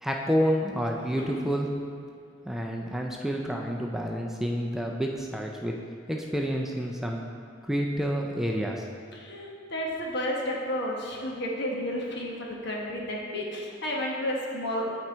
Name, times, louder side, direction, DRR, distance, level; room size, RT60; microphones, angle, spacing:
voice 1, 0.0-1.7 2.4-5.8 6.1-7.3 7.6-8.9, equal, ahead, 0 dB, 0.4 m, -29 dB
voice 2, 9.1-14.9, left 1 dB, 60° left, -2 dB, 1.2 m, -32 dB
8.4 x 4.4 x 4.5 m, 2.2 s
head